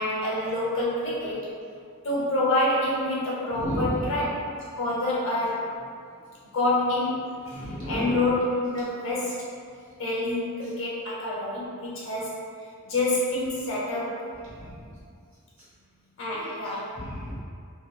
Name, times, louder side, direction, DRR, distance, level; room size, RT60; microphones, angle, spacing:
voice 1, 0.0-1.4 2.0-4.3 4.8-5.7 6.5-9.4 10.0-12.3 12.8-14.2 16.2-16.9, left 1 dB, 60° left, -6 dB, 0.7 m, -27 dB
voice 2, 3.5-4.1 7.5-8.2 14.5-14.8 17.0-17.4, equal, 55° right, -11 dB, 1.2 m, -32 dB
2.8 x 2.6 x 2.2 m, 2.3 s
head